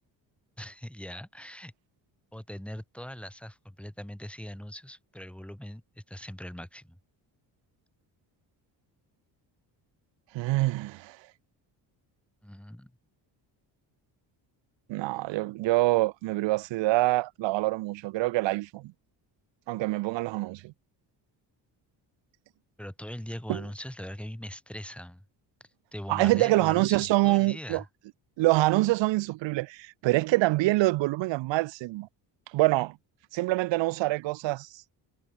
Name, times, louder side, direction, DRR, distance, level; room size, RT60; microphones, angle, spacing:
voice 1, 0.6-1.7 2.3-6.9 12.4-12.9 22.8-25.2 25.9-27.9, equal, 5° left, 6.8 m, -41 dB
voice 2, 10.3-11.2 14.9-18.9 19.7-20.7 23.5-23.6 26.1-27.8 28.4-32.1 32.5-33.0 33.3-34.7, right 19 dB, 75° right, 0.8 m, -25 dB
cardioid pair, 105°, 44 cm